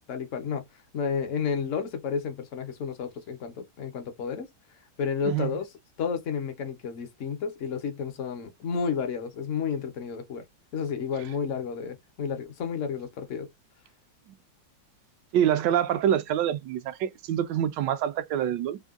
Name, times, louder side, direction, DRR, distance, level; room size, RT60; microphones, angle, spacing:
voice 1, 0.1-0.6 0.9-4.5 5.0-5.7 6.0-10.4 10.7-13.5, left 6 dB, 60° left, 0.8 m, -31 dB
voice 2, 5.2-5.6 15.3-18.8, right 10 dB, 75° right, 1.2 m, -26 dB
3.6 x 2.1 x 2.3 m
omnidirectional pair, 2.0 m